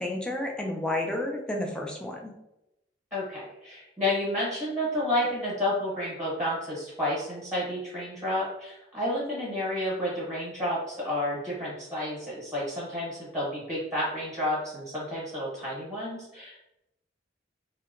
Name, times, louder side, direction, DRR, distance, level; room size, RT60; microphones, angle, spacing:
voice 1, 0.0-2.3, left 1 dB, 5° left, 0 dB, 0.3 m, -31 dB
voice 2, 3.1-16.6, left 1 dB, 10° right, -7 dB, 0.9 m, -30 dB
2.7 x 2.1 x 2.4 m, 0.89 s
head